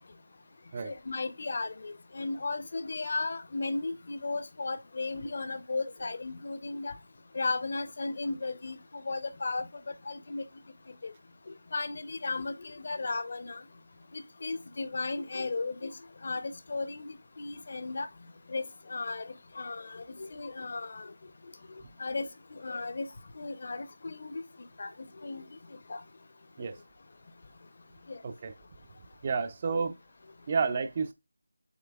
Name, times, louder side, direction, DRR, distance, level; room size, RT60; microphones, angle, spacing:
voice 1, 0.8-6.9 7.3-9.6 10.1-10.4 11.0-11.1 11.7-13.6 14.1-15.9 16.2-18.1 18.5-21.1 22.0-23.1 23.4-24.4 24.8-24.9 25.2-25.4 25.9-26.0, left 3 dB, 40° left, 0.6 m, -35 dB
voice 2, 28.2-28.5 29.2-30.0 30.5-31.1, right 5 dB, 25° right, 0.3 m, -30 dB
7.2 x 3.2 x 2.2 m
figure-of-eight pair, 170°, 0 cm